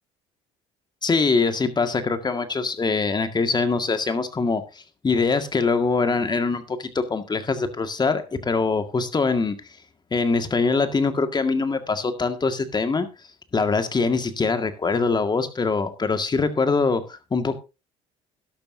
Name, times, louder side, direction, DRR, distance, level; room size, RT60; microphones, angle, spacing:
voice 1, 1.0-4.6 5.0-9.6 10.1-13.1 13.5-17.6, left 4 dB, 25° left, 8 dB, 1.9 m, -23 dB
12.0 x 11.5 x 2.7 m, 0.28 s
hypercardioid pair, 65°, 16 cm